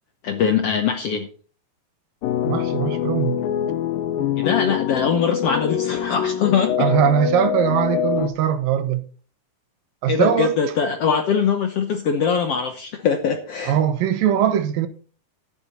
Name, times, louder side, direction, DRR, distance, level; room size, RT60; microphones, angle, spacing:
voice 1, 0.2-1.3 4.4-6.9 10.1-13.8, left 6 dB, 70° left, 1.5 m, -22 dB
sound 1, 2.2-8.3, left 9 dB, 85° left, 2.6 m, -24 dB
voice 2, 2.5-3.4 6.8-9.1 10.0-10.5 13.7-14.9, right 9 dB, 85° right, 2.9 m, -21 dB
11.5 x 10.0 x 4.1 m
omnidirectional pair, 3.9 m